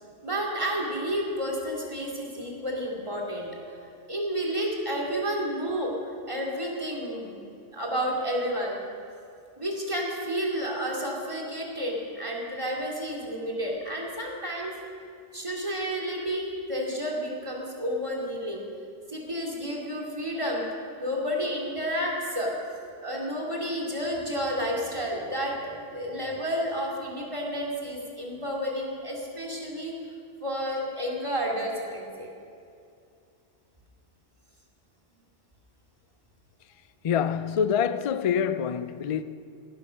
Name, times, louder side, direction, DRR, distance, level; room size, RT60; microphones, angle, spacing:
voice 1, 0.2-3.8 4.1-7.4 7.7-8.8 9.6-14.7 15.3-18.6 19.1-20.6 21.0-22.5 23.0-29.9 30.4-32.3, equal, 25° right, 2.7 m, -31 dB
voice 2, 37.0-39.2, left 7 dB, 55° left, 0.4 m, -26 dB
16.5 x 11.5 x 6.3 m
omnidirectional pair, 1.2 m